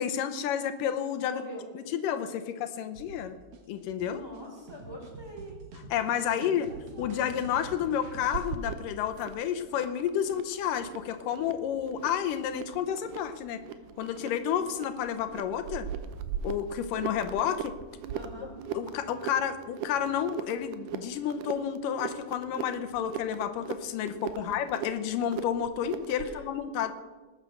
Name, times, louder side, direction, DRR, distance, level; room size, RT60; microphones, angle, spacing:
voice 1, 0.0-1.4 1.8-3.4 3.7-4.2 5.9-6.7 7.0-13.6 14.0-15.9 16.4-17.7 18.7-26.9, left 9 dB, 85° left, 9 dB, 2.5 m, -30 dB
voice 2, 1.2-1.6 4.0-5.6 6.2-7.1 18.1-18.6 24.4-24.5 26.2-26.4, right 1 dB, 5° right, -3 dB, 4.6 m, -44 dB
sound 1, 3.0-8.5, right 3 dB, 55° right, 2.2 m, -47 dB
sound 2, 8.3-26.4, right 7 dB, 85° right, 2.5 m, -40 dB
19.5 x 9.0 x 6.6 m, 1.3 s
omnidirectional pair, 3.8 m